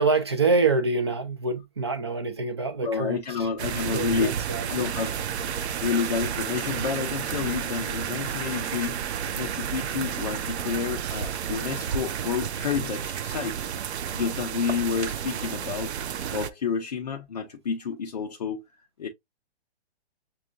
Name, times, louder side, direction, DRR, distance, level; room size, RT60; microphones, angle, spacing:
voice 1, 0.0-3.5 3.8-4.7, right 3 dB, 25° right, 0.4 m, -26 dB
voice 2, 2.8-4.4 4.7-5.2 5.8-9.0 9.3-13.6 14.1-15.9 16.3-18.6 19.0-19.1, left 6 dB, 40° left, 0.5 m, -29 dB
sound 1, 3.6-16.5, right 8 dB, 85° right, 0.5 m, -31 dB
6.0 x 2.3 x 2.4 m
hypercardioid pair, 170°, 32 cm